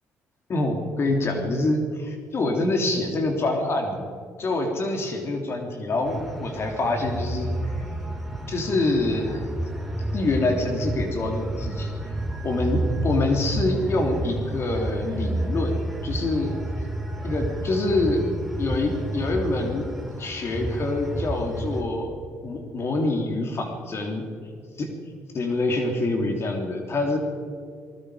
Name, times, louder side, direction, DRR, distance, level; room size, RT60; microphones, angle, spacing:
voice 1, 0.5-4.1 4.4-7.7 8.5-9.5 10.1-11.9 12.4-16.5 17.2-18.2 18.6-19.9 20.2-22.2 22.4-24.2 24.8-24.9 25.3-27.2, left 2 dB, 50° left, 3 dB, 3.4 m, -26 dB
Night Noise Lajamanu Verandah, 6.0-21.8, right 1 dB, ahead, 4.7 m, -30 dB
28.0 x 19.5 x 5.1 m, 2.2 s
supercardioid pair, 75°, 6 cm